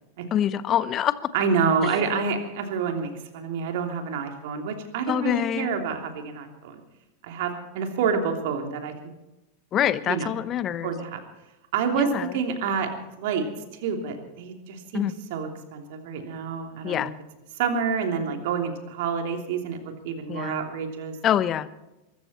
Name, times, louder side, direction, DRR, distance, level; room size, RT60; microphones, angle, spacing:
voice 1, 0.3-1.3 1.8-1.9 5.1-5.8 9.7-10.9 11.9-12.4 14.9-15.1 16.8-17.1 20.3-20.6 21.2-21.7, left 10 dB, 35° left, 16 dB, 0.9 m, -25 dB
voice 2, 1.3-6.8 7.2-8.9 10.0-10.3 10.8-11.2 11.7-12.9 13.2-13.5 13.7-17.1 17.6-21.2, right 6 dB, 55° right, 4 dB, 3.0 m, -28 dB
23.0 x 14.0 x 4.3 m, 0.98 s
figure-of-eight pair, 90°, 0 cm